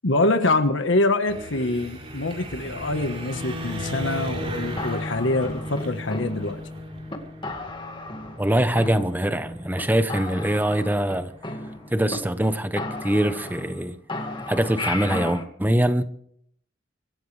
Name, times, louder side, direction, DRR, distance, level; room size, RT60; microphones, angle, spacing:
voice 1, 0.0-6.6, left 2 dB, 85° left, 1.4 m, -24 dB
sound 1, 1.3-13.8, equal, 30° right, 4.1 m, -37 dB
sound 2, 4.8-6.7 7.1-7.2 7.4-8.5 8.8-9.5 9.8-9.9 10.1-12.2 12.4-12.5 12.8-13.8 14.1-15.4, left 2 dB, 25° left, 2.1 m, -34 dB
voice 2, 8.4-11.3 11.9-14.0 14.4-16.0, right 1 dB, 10° right, 1.0 m, -23 dB
26.0 x 15.0 x 3.4 m
head